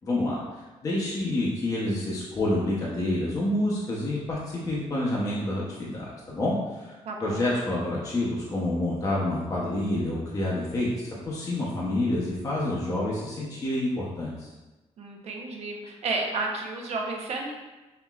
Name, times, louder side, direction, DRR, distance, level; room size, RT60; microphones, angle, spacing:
voice 1, 0.0-14.5, left 1 dB, 30° left, -5 dB, 0.7 m, -28 dB
voice 2, 7.0-7.4 15.0-17.5, right 3 dB, 60° right, 1 dB, 0.8 m, -32 dB
5.6 x 3.5 x 2.4 m, 1.1 s
wide cardioid pair, 155°, 12 cm